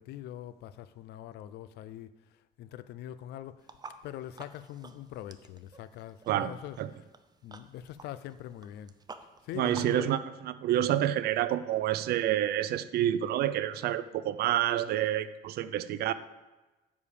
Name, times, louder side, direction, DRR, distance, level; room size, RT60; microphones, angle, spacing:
voice 1, 0.0-2.1 2.6-3.7 4.0-7.0 7.4-8.9 9.4-10.2, left 12 dB, 80° left, 15 dB, 0.6 m, -43 dB
sound 1, 3.6-10.1, right 4 dB, 25° right, 0.7 m, -51 dB
voice 2, 9.6-16.1, right 12 dB, 70° right, 14 dB, 0.6 m, -28 dB
9.9 x 4.8 x 7.1 m, 1.1 s
cardioid pair, 110°, 17 cm